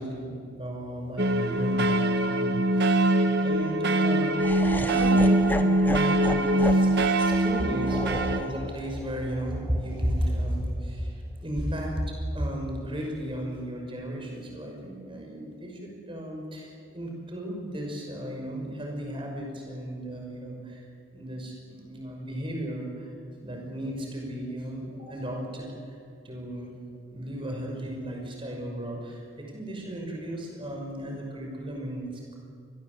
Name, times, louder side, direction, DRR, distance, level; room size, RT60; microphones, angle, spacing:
voice 1, 0.0-4.3 4.7-12.0 12.3-20.8 21.1-23.1 23.4-25.8 26.2-26.7 27.1-32.4, equal, 25° right, 1 dB, 5.9 m, -34 dB
sound 1, 1.2-8.4, right 1 dB, 50° right, 1.6 m, -23 dB
Laughter, 4.4-10.5, left 1 dB, 10° left, 1.0 m, -35 dB
26.0 x 20.0 x 8.2 m, 2.3 s
head